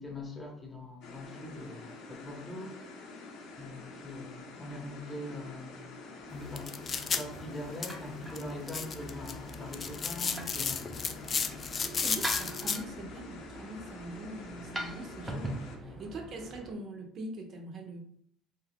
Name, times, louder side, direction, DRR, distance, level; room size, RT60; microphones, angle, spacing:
voice 1, 0.0-3.0 3.6-6.0 6.3-6.7 7.1-11.2 15.8-16.0, left 1 dB, 20° left, 0.8 m, -43 dB
sound 1, 1.0-15.8, left 3 dB, 65° left, 0.7 m, -47 dB
sound 2, 6.2-16.7, right 1 dB, 10° right, 0.6 m, -43 dB
sound 3, 6.3-12.8, left 5 dB, 35° left, 0.3 m, -35 dB
voice 2, 11.8-18.0, right 1 dB, 50° right, 0.6 m, -43 dB
2.5 x 2.3 x 3.4 m
supercardioid pair, 95°, 0 cm